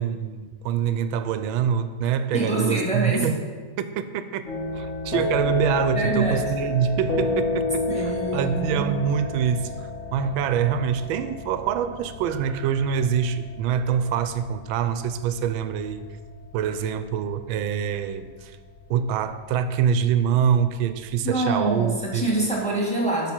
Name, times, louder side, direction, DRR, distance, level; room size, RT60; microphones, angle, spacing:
voice 1, 0.0-3.4 3.8-4.4 4.7-16.0 16.5-18.6 18.9-22.3, right 8 dB, 85° right, 11 dB, 1.4 m, -25 dB
voice 2, 2.3-3.3 5.9-6.5 7.9-9.0 21.2-23.3, right 2 dB, 5° left, -3 dB, 1.8 m, -25 dB
sound 1, 4.5-22.4, left 3 dB, 40° left, 1.5 m, -32 dB
12.0 x 5.8 x 4.4 m, 1.5 s
omnidirectional pair, 2.2 m